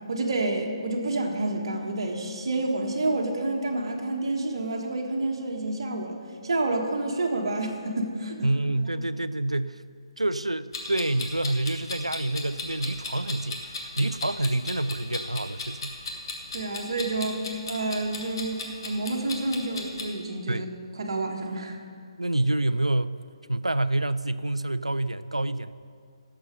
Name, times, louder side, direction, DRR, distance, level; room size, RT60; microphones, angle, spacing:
voice 1, 0.1-8.5 16.5-20.7 21.0-21.8, right 2 dB, 55° right, 2 dB, 1.5 m, -29 dB
voice 2, 8.4-9.8 10.2-16.0 20.5-20.7 22.2-23.2 23.5-25.7, right 2 dB, 85° right, 15 dB, 0.4 m, -27 dB
Clock, 10.7-20.0, left 3 dB, 45° left, 1.6 m, -36 dB
16.5 x 6.9 x 5.1 m, 2.2 s
figure-of-eight pair, 140°, 3 cm